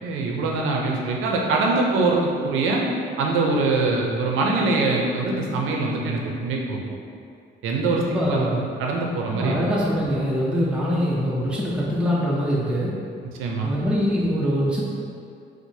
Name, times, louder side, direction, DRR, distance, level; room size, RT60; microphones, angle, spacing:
voice 1, 0.0-2.8 3.2-6.8 7.6-8.5 8.8-9.6 13.4-13.7, right 3 dB, 90° right, -1 dB, 0.5 m, -23 dB
voice 2, 8.0-8.6 9.3-12.9 13.6-14.8, equal, 5° right, -6 dB, 0.6 m, -23 dB
4.5 x 2.1 x 2.7 m, 2.4 s
cardioid pair, 90°, 20 cm